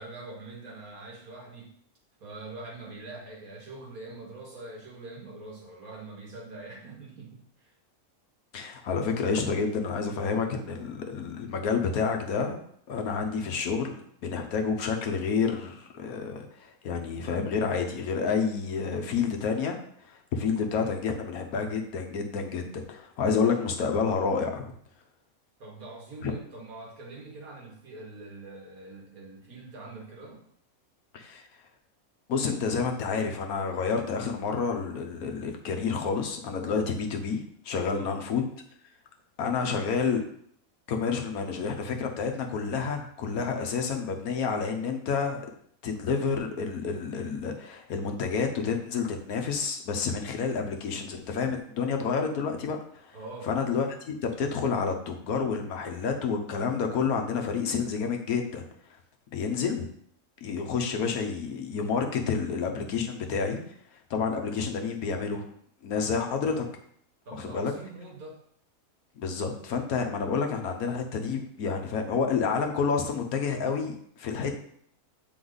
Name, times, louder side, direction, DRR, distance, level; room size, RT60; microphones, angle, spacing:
voice 1, 0.0-1.7 2.2-7.7 25.6-30.4 37.9-38.1 53.1-53.5 67.3-68.4, right 2 dB, 90° right, -1 dB, 2.1 m, -43 dB
voice 2, 8.5-12.6 12.9-19.8 20.0-24.7 26.2-26.3 31.1-31.4 32.3-38.4 39.4-40.2 40.9-45.4 45.8-53.2 53.4-58.6 59.3-59.8 60.4-63.6 64.1-65.5 65.8-66.6 67.4-67.7 69.2-74.6, left 5 dB, 85° left, 4 dB, 1.4 m, -29 dB
7.9 x 4.4 x 4.0 m, 0.66 s
omnidirectional pair, 1.5 m